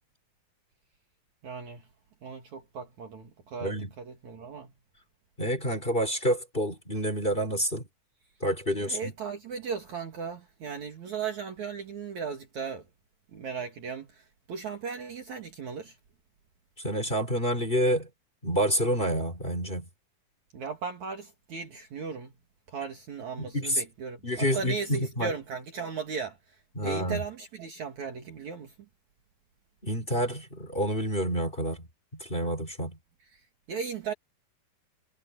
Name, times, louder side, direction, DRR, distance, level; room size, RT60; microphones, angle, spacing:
voice 1, 1.4-1.9 2.2-4.7 8.8-12.8 13.3-16.0 20.5-22.3 22.7-28.7 33.3-33.4 33.7-34.1, right 6 dB, 55° right, 3.1 m, -37 dB
voice 2, 5.4-7.8 8.4-9.1 16.8-18.1 18.4-19.9 23.4-23.8 24.2-25.3 26.8-27.2 29.8-31.8 32.2-33.0, equal, 15° left, 4.6 m, -28 dB
omnidirectional pair, 4.4 m